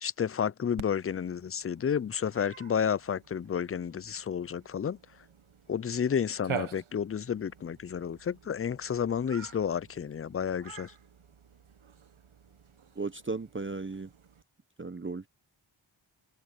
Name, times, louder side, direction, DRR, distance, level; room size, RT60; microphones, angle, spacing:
voice 1, 0.0-5.0 5.7-10.9, left 7 dB, 30° left, 0.4 m, -31 dB
Cat, 0.8-14.4, right 7 dB, 90° right, 1.3 m, -46 dB
voice 2, 13.0-14.1 14.8-15.3, right 3 dB, 25° right, 0.8 m, -35 dB
wide cardioid pair, 65°, 47 cm